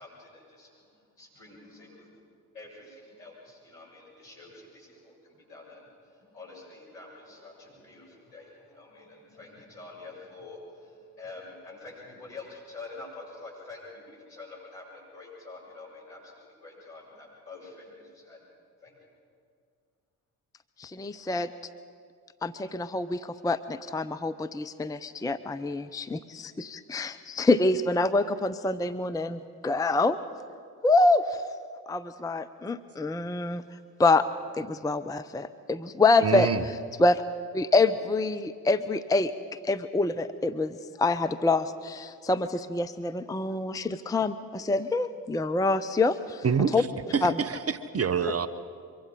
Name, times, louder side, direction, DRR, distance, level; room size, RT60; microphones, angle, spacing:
voice 1, 0.0-2.2 2.5-18.4 18.8-19.0, left 3 dB, 70° left, -5 dB, 7.6 m, -47 dB
voice 2, 20.8-21.5 22.4-30.2 30.8-31.2 31.9-33.6 34.0-34.2 34.5-36.5 37.0-37.2 37.5-39.3 39.6-46.4 46.7-46.8 47.2-47.4, left 3 dB, 10° left, 11 dB, 0.7 m, -26 dB
voice 3, 36.2-36.6 46.4-46.9 47.1-48.5, right 6 dB, 30° right, 13 dB, 1.0 m, -26 dB
24.0 x 23.5 x 5.2 m, 2.1 s
figure-of-eight pair, 40°, 46 cm